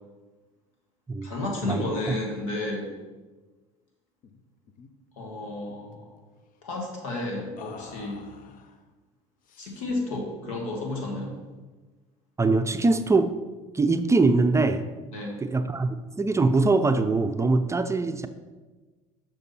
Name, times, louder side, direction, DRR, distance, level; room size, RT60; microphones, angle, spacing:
voice 1, 1.2-2.9 5.2-6.1 6.6-8.3 9.6-11.3 15.1-15.4, left 2 dB, 80° left, 0 dB, 1.8 m, -32 dB
sound 1, 4.2-4.4 4.7-4.9 5.2-6.0 7.6-8.8 9.4-10.1, left 6 dB, 55° left, 0.7 m, -48 dB
voice 2, 12.4-13.3 13.7-14.9 15.4-18.3, right 3 dB, 15° right, 9 dB, 0.4 m, -22 dB
6.6 x 6.0 x 4.2 m, 1.3 s
hypercardioid pair, 75°, 17 cm